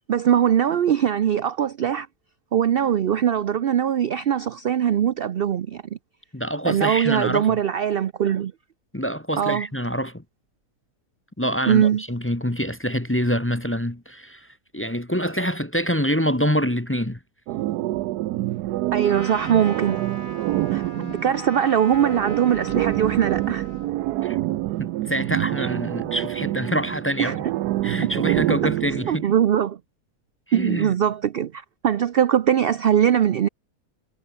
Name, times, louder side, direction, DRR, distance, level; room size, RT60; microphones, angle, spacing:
voice 1, 0.1-2.1 2.5-5.8 6.6-8.5 9.4-9.7 11.7-12.0 18.9-20.0 20.7-20.8 21.2-23.6 27.2-27.4 29.1-29.8 30.5-33.5, right 9 dB, 60° right, 0.6 m, -21 dB
voice 2, 6.3-7.6 8.9-10.2 11.4-14.5 14.7-17.2 21.0-21.2 24.2-24.4 24.8-27.4 27.8-29.3 30.5-30.9, equal, 10° left, 1.0 m, -26 dB
sound 1, 17.5-29.2, right 16 dB, 85° right, 1.1 m, -27 dB
Trumpet, 19.0-23.9, right 1 dB, 30° right, 8.2 m, -40 dB
omnidirectional pair, 1.6 m